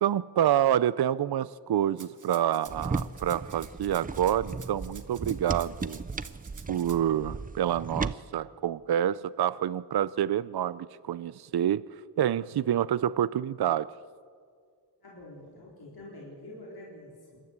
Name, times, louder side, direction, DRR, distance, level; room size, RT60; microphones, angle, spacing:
voice 1, 0.0-6.0 6.7-11.8 12.2-13.9, right 10 dB, 70° right, 0.5 m, -27 dB
Rattle (instrument), 2.0-7.0, right 5 dB, 50° right, 1.3 m, -50 dB
sound 1, 2.7-8.1, right 4 dB, 20° right, 0.5 m, -36 dB
voice 2, 15.0-17.4, left 1 dB, 65° left, 4.3 m, -46 dB
27.0 x 12.5 x 8.2 m
wide cardioid pair, 115°, 40 cm